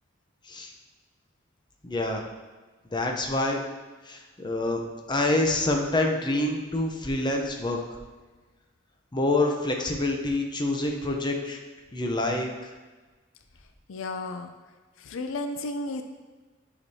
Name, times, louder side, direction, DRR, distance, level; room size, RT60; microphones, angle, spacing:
voice 1, 1.8-2.2 2.9-3.6 4.0-4.8 5.1-7.8 9.1-11.6 11.9-12.7, left 2 dB, 25° left, 2 dB, 0.7 m, -26 dB
voice 2, 13.9-14.5 15.1-16.0, left 2 dB, 75° left, 6 dB, 0.4 m, -33 dB
9.6 x 5.1 x 2.8 m, 1.3 s
head